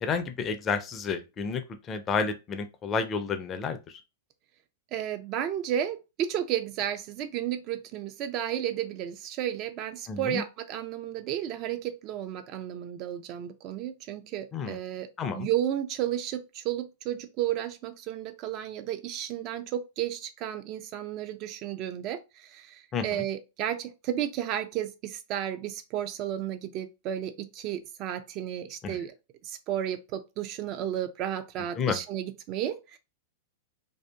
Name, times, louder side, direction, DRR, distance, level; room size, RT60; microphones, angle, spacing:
voice 1, 0.0-1.6 1.9-3.8 10.1-10.4 14.5-14.8 15.2-15.5 22.9-23.2 28.8-29.0 31.8-32.0, left 5 dB, 30° left, 0.4 m, -30 dB
voice 2, 4.9-15.1 15.3-29.1 29.4-33.0, right 11 dB, 40° right, 0.3 m, -33 dB
2.6 x 2.4 x 2.2 m
figure-of-eight pair, 100°, 0 cm